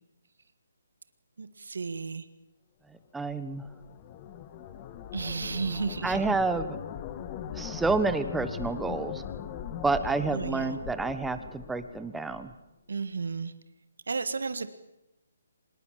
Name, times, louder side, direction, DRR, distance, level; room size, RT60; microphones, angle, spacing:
voice 1, 1.4-2.3 5.1-6.4 10.3-10.7 12.9-13.5 14.1-14.7, right 4 dB, 80° right, 11 dB, 1.8 m, -33 dB
voice 2, 3.1-3.7 6.0-6.8 7.5-9.2 9.8-12.5, right 3 dB, 5° right, 11 dB, 1.3 m, -29 dB
sound 1, 3.3-12.5, left 9 dB, 25° left, 1.7 m, -40 dB
25.5 x 21.5 x 7.5 m, 0.92 s
hypercardioid pair, 160°, 0 cm